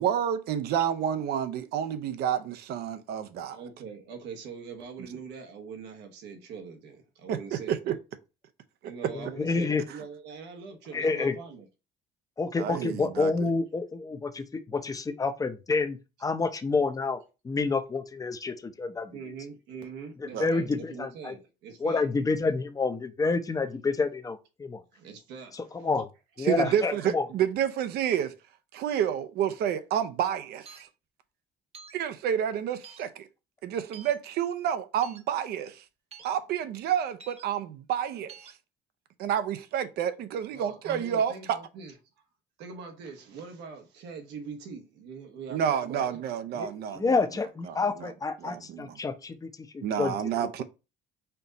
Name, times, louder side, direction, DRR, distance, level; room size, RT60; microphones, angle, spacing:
voice 1, 0.0-3.6 5.0-5.1 7.3-8.0 9.9-10.0 12.6-13.5 20.3-20.5 26.4-28.3 28.7-30.9 31.9-33.3 33.6-35.8 36.2-38.5 39.2-41.6 45.5-47.2 47.7-48.1 48.4-49.0 49.8-50.6, right 9 dB, 70° right, 0.6 m, -29 dB
voice 2, 3.5-7.9 8.8-11.7 19.1-22.0 24.9-25.9 26.6-27.0 40.5-41.9 42.6-46.2, right 5 dB, 85° right, 1.0 m, -43 dB
voice 3, 9.1-9.8 10.9-11.4 12.4-19.2 20.4-21.3 21.8-24.8 25.5-26.1 26.4-27.2 46.6-46.7 46.9-50.3, left 4 dB, 20° left, 0.6 m, -29 dB
sound 1, 30.7-30.9 31.7-32.0 32.8-33.1 33.9-34.2 35.0-35.2 36.1-36.3 37.2-37.4 38.3-38.5, right 6 dB, 35° right, 0.7 m, -48 dB
4.4 x 2.6 x 4.0 m
cardioid pair, 110°, 17 cm